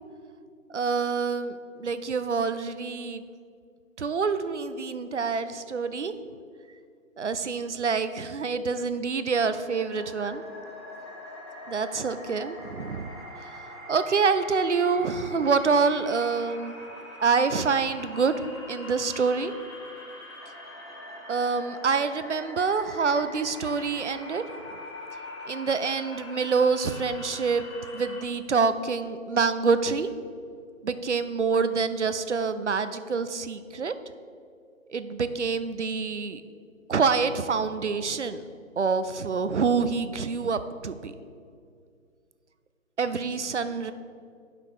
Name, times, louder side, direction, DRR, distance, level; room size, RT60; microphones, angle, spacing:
voice 1, 0.7-3.2 4.0-6.1 7.2-10.4 11.7-13.1 13.9-16.8 17.2-18.4 18.7-19.5 21.3-24.4 25.5-27.7 27.9-30.1 30.8-33.9 34.9-36.4 36.9-38.4 38.8-41.1 43.0-43.9, right 5 dB, 60° right, 11 dB, 0.5 m, -26 dB
sound 1, 9.5-28.2, left 1 dB, 20° left, 0.8 m, -43 dB
7.7 x 5.8 x 4.8 m, 2.2 s
figure-of-eight pair, 155°, 41 cm